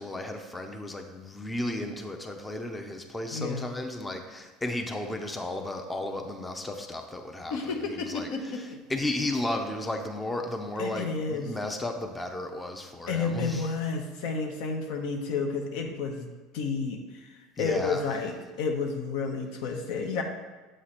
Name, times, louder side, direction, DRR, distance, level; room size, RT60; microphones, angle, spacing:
voice 1, 0.0-8.3 8.5-13.7 17.6-18.0, left 1 dB, 10° left, 4 dB, 0.5 m, -34 dB
voice 2, 3.3-3.7 7.5-8.6 10.8-11.6 13.1-16.3 16.5-20.2, left 4 dB, 75° left, 3 dB, 0.8 m, -31 dB
7.7 x 3.1 x 4.1 m, 1.3 s
supercardioid pair, 120°, 0 cm